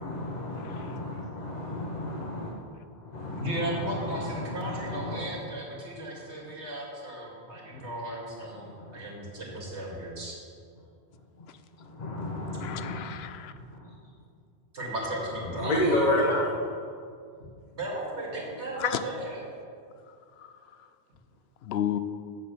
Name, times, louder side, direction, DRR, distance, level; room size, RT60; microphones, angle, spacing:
voice 1, 0.0-2.5 2.9-5.2 6.2-6.3 7.7-7.9 8.4-9.0 11.4-11.5 11.8-13.9 15.5-16.5 18.6-18.7, left 1 dB, 40° left, -3 dB, 1.2 m, -32 dB
voice 2, 0.6-0.9 11.5-11.6 12.5-13.5 18.8-19.0 20.1-20.5 20.8-20.9 21.6-22.0, left 11 dB, 70° left, 11 dB, 0.8 m, -33 dB
voice 3, 3.3-10.4 14.7-16.4 17.7-19.4, right 1 dB, 85° right, -3 dB, 2.6 m, -35 dB
7.8 x 7.5 x 6.8 m, 2.3 s
omnidirectional pair, 1.1 m